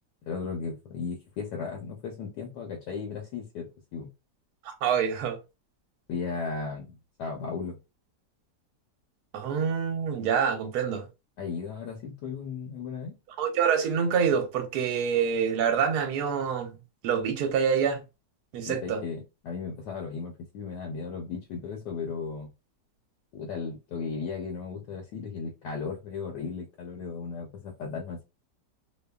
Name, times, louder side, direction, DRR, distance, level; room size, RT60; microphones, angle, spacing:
voice 1, 0.2-4.1 6.1-7.8 11.4-13.2 18.6-22.5 23.3-28.2, left 5 dB, 75° left, 1.2 m, -36 dB
voice 2, 4.6-5.4 9.3-11.0 13.4-16.8 17.0-18.0 18.5-19.0, right 7 dB, 65° right, 1.1 m, -26 dB
2.8 x 2.3 x 2.2 m
omnidirectional pair, 1.9 m